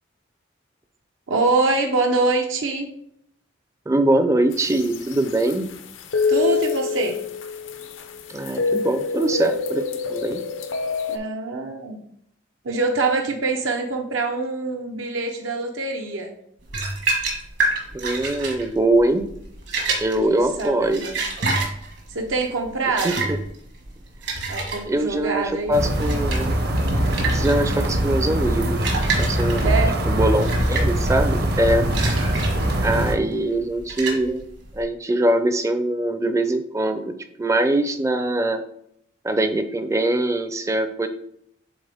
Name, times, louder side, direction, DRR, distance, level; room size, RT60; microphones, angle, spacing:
voice 1, 1.3-2.9 6.3-7.2 11.1-12.0 12.6-16.3 20.3-21.2 22.1-23.3 24.5-25.8 29.6-30.0, right 3 dB, 85° right, 2 dB, 0.7 m, -24 dB
voice 2, 3.9-5.7 8.3-10.4 17.9-19.3 20.0-21.0 23.0-23.4 24.9-26.6 27.3-28.9 29.2-29.7 30.1-31.9 32.8-34.4 34.7-38.6 39.2-41.1, right 1 dB, 15° right, 9 dB, 0.4 m, -22 dB
sound 1, 4.5-11.2, left 5 dB, 80° left, 0.6 m, -27 dB
sound 2, 16.6-34.8, right 3 dB, 70° right, 1.5 m, -29 dB
sound 3, 25.7-33.1, right 1 dB, 55° right, 0.7 m, -22 dB
7.9 x 3.7 x 3.5 m, 0.73 s
head